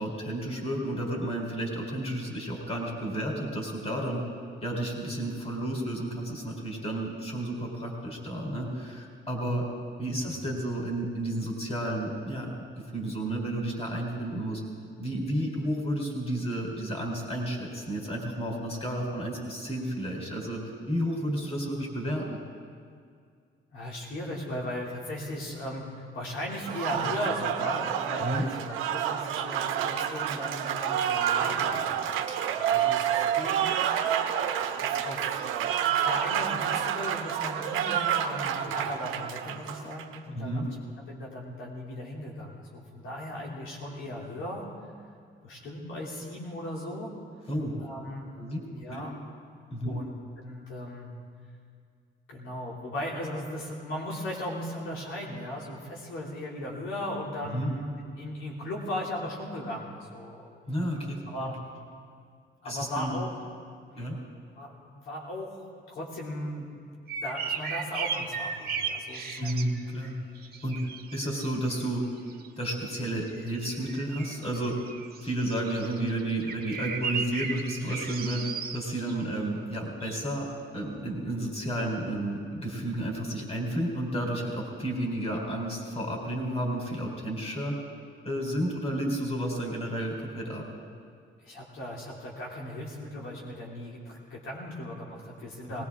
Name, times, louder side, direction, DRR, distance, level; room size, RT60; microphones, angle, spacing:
voice 1, 0.0-4.2 4.6-9.7 10.0-12.5 12.8-14.6 15.0-20.6 20.9-22.4 28.2-28.4 40.3-40.7 47.5-47.7 48.4-49.1 49.7-50.0 57.5-57.7 60.7-61.5 62.6-63.2 64.0-64.2 69.4-70.1 70.6-72.0 72.6-74.8 75.2-78.4 78.7-87.8 88.2-90.6 95.6-95.8, right 1 dB, 30° left, 0 dB, 4.0 m, -32 dB
voice 2, 23.7-31.8 32.1-32.3 32.5-33.8 34.4-40.8 41.1-44.7 45.4-47.1 47.8-48.3 48.7-49.2 49.8-51.1 52.3-60.6 61.3-61.6 62.6-63.3 63.9-64.1 64.6-66.7 67.2-69.5 91.4-95.8, left 1 dB, 85° left, -4 dB, 2.9 m, -37 dB
Applause, 26.5-40.2, right 9 dB, 90° right, 0.9 m, -29 dB
sound 1, 67.1-70.1 70.4-71.8 72.2-72.9 73.3-79.2 80.0-80.2, right 6 dB, 50° right, 1.5 m, -36 dB
20.0 x 19.0 x 3.7 m, 2.2 s
cardioid pair, 90°, 20 cm